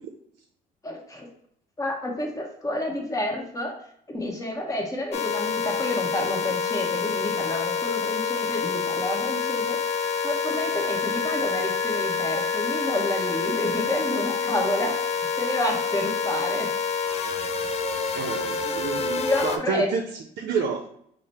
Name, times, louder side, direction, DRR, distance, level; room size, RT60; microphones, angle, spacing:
voice 1, 0.8-1.3 1.8-3.8 4.1-9.8 10.2-15.0 15.3-16.7 18.1-18.3 18.6-18.8 19.2-19.9, left 1 dB, 20° left, 1 dB, 1.0 m, -29 dB
sound 1, 5.1-19.6, left 5 dB, 40° left, 0.5 m, -27 dB
Wind instrument woodwind instrument, 9.8-16.8, left 2 dB, 90° left, 0.7 m, -39 dB
voice 2, 18.2-20.0 20.4-20.8, right 5 dB, 65° right, 4 dB, 0.5 m, -28 dB
4.9 x 2.0 x 4.2 m, 0.70 s
cardioid pair, 110°, 17 cm